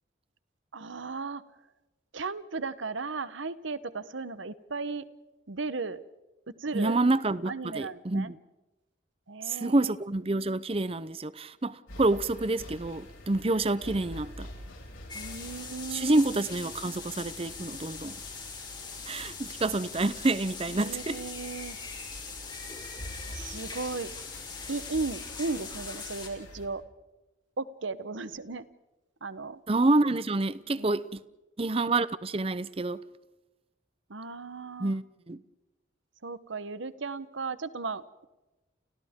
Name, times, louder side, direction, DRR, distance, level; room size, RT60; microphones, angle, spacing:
voice 1, 0.7-1.4 2.1-5.0 5.5-6.0 6.6-7.0 7.5-8.3 9.3-10.0 15.1-16.2 20.7-21.8 23.3-24.1 24.7-26.8 27.6-28.6 29.2-29.6 30.7-30.9 34.1-35.0 36.2-38.3, right 4 dB, 75° right, 1.0 m, -36 dB
voice 2, 6.7-8.4 9.5-14.5 15.9-18.2 19.1-21.2 29.7-31.2 31.6-33.0 34.8-35.4, right 2 dB, 30° right, 0.6 m, -28 dB
sound 1, 11.9-26.7, left 1 dB, 90° left, 5.9 m, -47 dB
sound 2, 15.1-26.3, left 5 dB, 25° left, 3.5 m, -41 dB
29.5 x 29.0 x 3.7 m
head